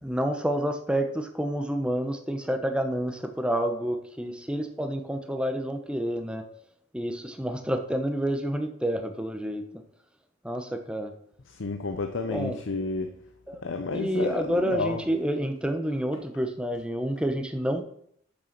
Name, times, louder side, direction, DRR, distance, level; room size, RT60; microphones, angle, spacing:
voice 1, 0.0-6.5 6.9-9.6 10.4-11.1 12.2-12.6 13.5-17.8, right 1 dB, 5° right, 6 dB, 0.8 m, -29 dB
voice 2, 11.5-13.1 13.6-15.0, left 3 dB, 70° left, 7 dB, 0.7 m, -31 dB
7.0 x 6.5 x 5.9 m, 0.67 s
head